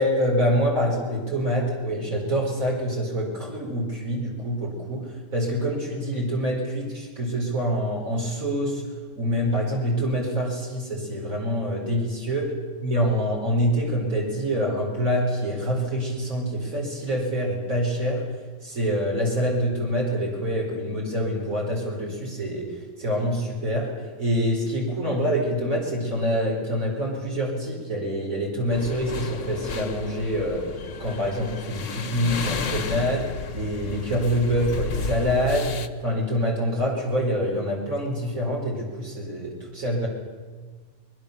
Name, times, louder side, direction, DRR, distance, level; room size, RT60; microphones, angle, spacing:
voice 1, 0.0-8.8 9.2-12.5 12.8-18.2 18.6-22.7 23.0-23.9 24.2-40.1, equal, 65° right, -2 dB, 5.4 m, -26 dB
sound 1, 28.7-35.9, left 5 dB, 60° left, 1.4 m, -33 dB
24.5 x 21.5 x 6.9 m, 1.4 s
omnidirectional pair, 1.5 m